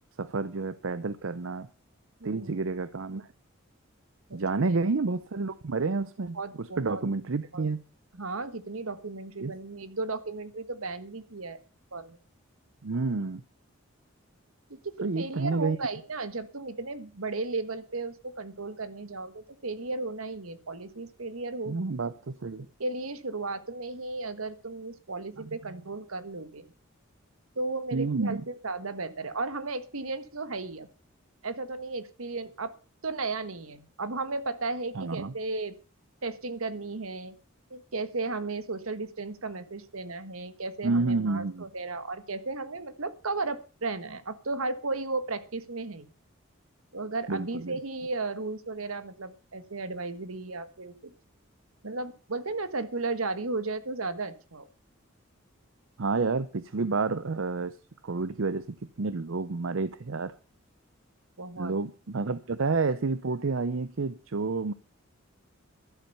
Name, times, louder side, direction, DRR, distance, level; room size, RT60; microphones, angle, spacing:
voice 1, 0.2-1.7 2.2-3.3 4.3-7.8 9.4-9.5 12.8-13.4 15.0-15.8 21.7-22.7 27.9-28.4 34.9-35.3 40.8-41.7 47.3-47.8 56.0-57.8 58.0-60.3 61.6-64.7, right 3 dB, 70° right, 0.6 m, -29 dB
voice 2, 2.2-2.6 4.3-4.8 6.3-7.0 7.5-7.6 8.1-11.6 11.9-12.2 14.7-22.0 22.6-26.6 27.5-30.9 31.4-32.7 33.0-35.7 36.2-37.3 37.7-46.1 46.9-51.1 51.8-54.7 61.4-61.7, right 3 dB, 85° right, 1.5 m, -35 dB
12.5 x 11.5 x 5.5 m
head